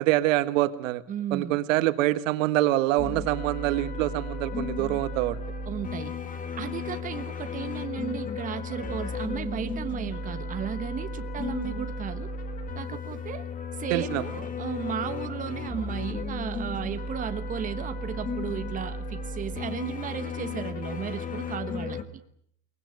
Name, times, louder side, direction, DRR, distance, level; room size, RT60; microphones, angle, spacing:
voice 1, 0.0-1.0 1.3-5.4 13.9-14.2, right 16 dB, 75° right, 12 dB, 1.5 m, -25 dB
voice 2, 1.1-1.6 5.7-6.1 6.6-12.3 12.7-13.5 13.8-22.0, right 8 dB, 20° right, 9 dB, 1.2 m, -34 dB
sound 1, 3.0-22.0, left 3 dB, 20° left, 2.0 m, -34 dB
23.0 x 19.5 x 9.5 m, 0.69 s
supercardioid pair, 150°, 39 cm